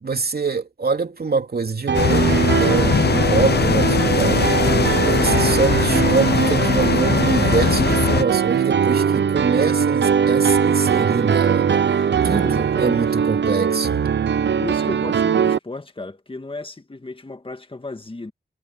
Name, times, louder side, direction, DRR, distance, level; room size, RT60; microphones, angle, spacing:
voice 1, 0.0-4.6 5.0-14.0, right 4 dB, 60° right, 2.9 m, -25 dB
sound 1, 1.9-8.2, left 7 dB, 65° left, 0.6 m, -20 dB
Piano, 1.9-15.6, right 7 dB, 85° right, 0.9 m, -20 dB
voice 2, 5.1-5.5 12.2-13.1 14.6-18.3, left 2 dB, 30° left, 1.9 m, -34 dB
cardioid pair, 60°, 18 cm